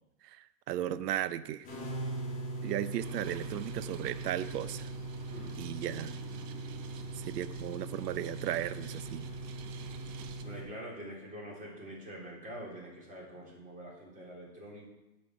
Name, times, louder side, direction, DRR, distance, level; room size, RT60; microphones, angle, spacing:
voice 1, 0.2-1.7 2.6-4.9 5.6-6.2 7.2-9.3, right 12 dB, 85° right, 15 dB, 0.8 m, -36 dB
sound 1, 1.6-10.6, right 2 dB, 20° left, 2.8 m, -40 dB
sound 2, 3.0-10.4, right 8 dB, 35° right, 0.7 m, -48 dB
voice 2, 10.4-14.9, equal, 15° right, -4 dB, 3.5 m, -45 dB
8.5 x 5.8 x 7.9 m, 0.95 s
supercardioid pair, 145°, 47 cm